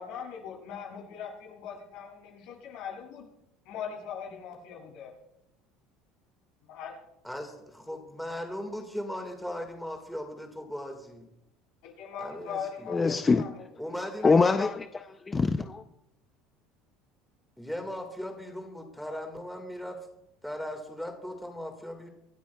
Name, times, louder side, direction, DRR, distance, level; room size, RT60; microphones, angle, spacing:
voice 1, 0.0-3.2 3.6-5.1 6.6-6.9 11.8-13.5 14.0-14.4, left 7 dB, 70° left, 6.6 m, -40 dB
voice 2, 7.2-11.3 12.2-12.9 13.8-14.3 17.6-20.1 20.4-22.1, equal, ahead, 1.7 m, -38 dB
voice 3, 12.9-13.4 14.2-15.8, left 4 dB, 20° left, 0.5 m, -24 dB
26.5 x 13.0 x 2.3 m
supercardioid pair, 120°, 0 cm